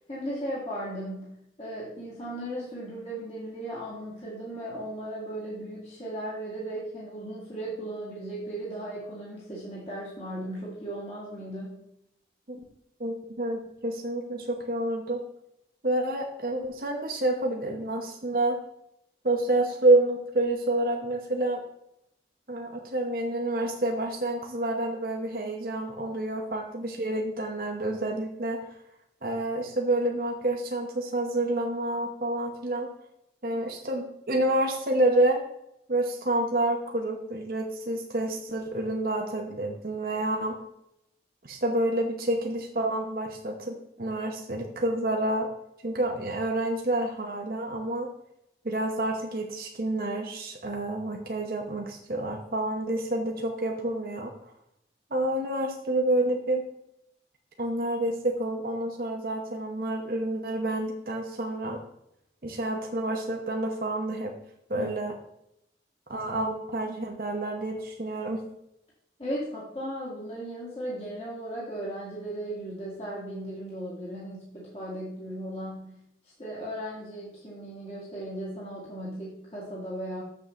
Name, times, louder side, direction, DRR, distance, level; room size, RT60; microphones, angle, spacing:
voice 1, 0.1-1.3 1.6-11.7 33.5-33.6 64.7-64.9 69.2-75.9 76.4-80.2, right 1 dB, 35° left, -7 dB, 2.0 m, -36 dB
voice 2, 13.0-15.2 15.8-18.6 19.2-21.6 22.5-28.6 29.2-32.9 33.4-35.4 35.9-40.6 41.4-45.5 45.8-48.1 48.6-54.3 55.1-56.6 57.6-61.8 62.4-64.3 64.7-65.1 66.1-68.4, right 1 dB, 55° right, 1 dB, 0.9 m, -28 dB
7.2 x 7.1 x 3.1 m, 0.78 s
head